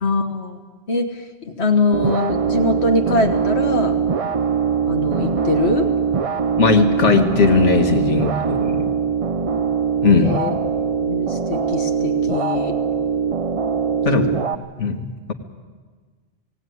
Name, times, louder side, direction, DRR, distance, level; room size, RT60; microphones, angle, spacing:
voice 1, 0.0-0.6 0.9-1.3 1.6-4.0 4.9-5.9 10.2-10.5 11.0-12.7 14.2-14.3, left 3 dB, 65° left, 5 dB, 1.7 m, -22 dB
sound 1, 1.9-14.6, right 6 dB, 35° right, 0.6 m, -22 dB
voice 2, 6.6-8.9 10.0-10.4 14.1-14.3 14.8-15.3, left 5 dB, 85° left, 4 dB, 1.8 m, -18 dB
18.5 x 17.5 x 9.4 m, 1.5 s
omnidirectional pair, 1.2 m